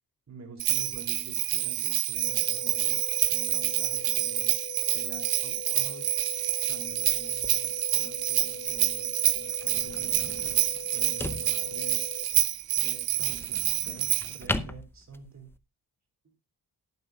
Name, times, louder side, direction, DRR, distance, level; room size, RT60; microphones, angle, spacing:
voice 1, 0.3-4.6 4.9-6.2 6.7-10.6 10.9-12.0 12.8-15.5, right 4 dB, 45° right, 5 dB, 3.3 m, -47 dB
Bell, 0.6-14.4, right 14 dB, 70° right, 0.5 m, -28 dB
sound 1, 2.2-12.2, left 7 dB, 35° left, 0.9 m, -43 dB
sound 2, 6.8-15.6, left 1 dB, 5° left, 0.6 m, -40 dB
18.5 x 9.4 x 2.4 m, 0.24 s
wide cardioid pair, 135°, 38 cm